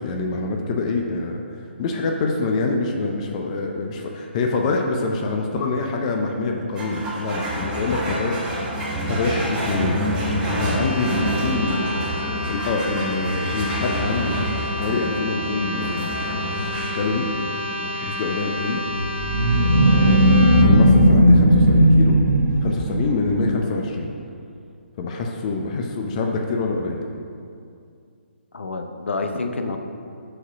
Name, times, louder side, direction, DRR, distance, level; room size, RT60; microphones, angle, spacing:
voice 1, 0.0-1.4 1.8-10.0 10.6-14.4 14.8-16.3 16.9-17.3 17.9-18.8 19.9-22.2 22.6-24.1 25.0-27.0, left 3 dB, 35° left, 2 dB, 0.5 m, -25 dB
sound 1, 6.7-23.5, equal, 15° right, 1.0 m, -29 dB
sound 2, 10.5-20.6, left 1 dB, 60° right, 1.1 m, -30 dB
sound 3, 18.9-23.3, equal, 85° right, 0.8 m, -16 dB
voice 2, 28.5-29.8, left 3 dB, 80° left, 5 dB, 0.7 m, -28 dB
4.9 x 4.3 x 5.7 m, 2.4 s
hypercardioid pair, 150°, 6 cm